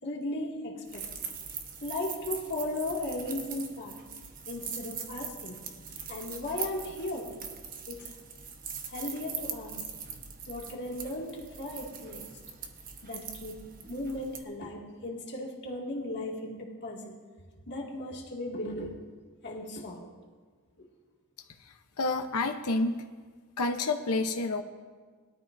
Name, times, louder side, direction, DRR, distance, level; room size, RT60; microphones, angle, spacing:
voice 1, 0.0-1.1 1.8-3.9 4.5-5.6 6.1-7.3 7.9-8.1 8.9-10.1 10.5-12.2 13.0-13.6 13.9-17.1 17.7-19.0 19.4-20.1 20.8-20.9, left 1 dB, 50° left, -3 dB, 2.2 m, -36 dB
sound 1, 0.8-14.4, right 6 dB, 40° right, 1.1 m, -41 dB
voice 2, 21.6-23.0 23.6-24.6, left 3 dB, 85° left, 5 dB, 0.8 m, -29 dB
21.0 x 13.0 x 2.6 m, 1.5 s
head